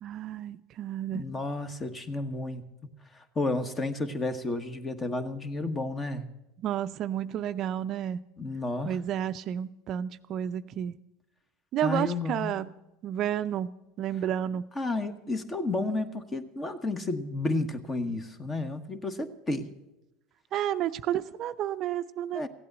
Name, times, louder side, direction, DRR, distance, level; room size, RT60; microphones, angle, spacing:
voice 1, 0.0-1.2 6.6-8.2 8.9-10.9 11.7-12.7 13.0-13.7 14.0-14.6 20.5-22.4, right 10 dB, 45° right, 12 dB, 0.5 m, -31 dB
voice 2, 1.1-2.6 3.1-6.3 8.4-9.0 11.8-12.6 14.7-19.7 22.3-22.5, left 2 dB, 20° left, 10 dB, 1.3 m, -32 dB
15.5 x 8.5 x 8.1 m, 0.96 s
hypercardioid pair, 100°, 0 cm